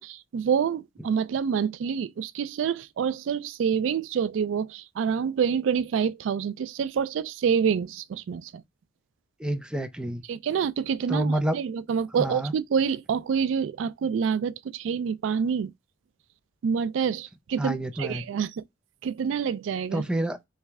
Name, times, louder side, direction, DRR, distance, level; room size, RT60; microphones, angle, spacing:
voice 1, 0.0-8.6 10.3-15.7 16.6-18.6 19.0-20.1, right 7 dB, 75° right, 0.3 m, -27 dB
voice 2, 9.4-10.2 11.1-11.6 12.2-12.5 17.6-18.2 19.9-20.5, right 1 dB, 5° right, 0.5 m, -28 dB
3.3 x 3.2 x 3.4 m
head